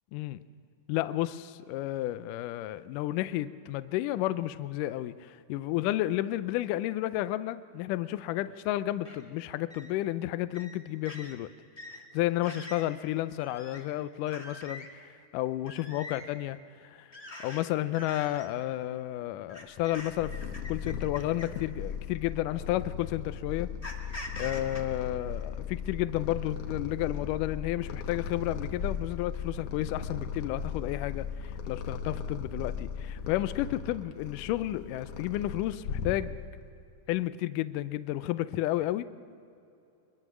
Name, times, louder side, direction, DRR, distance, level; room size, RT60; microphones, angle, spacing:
voice 1, 0.1-0.4 0.9-11.5 12.1-14.9 15.3-16.6 16.8-17.1 17.4-20.4 20.7-23.7 24.4-36.4 37.1-39.0, left 15 dB, 80° left, 2.1 m, -32 dB
sound 1, 9.0-9.2 9.7-9.9 10.5-10.8 11.0-11.3 11.8-12.0 12.4-12.9 13.4-13.8 14.3-14.9 15.7-16.2 17.1-17.6 17.9-18.5 19.5-21.6 22.5-22.6 23.8-24.8, left 2 dB, 15° left, 1.5 m, -44 dB
Purr, 19.8-36.6, left 6 dB, 60° left, 1.8 m, -37 dB
23.5 x 22.5 x 6.2 m
omnidirectional pair, 3.9 m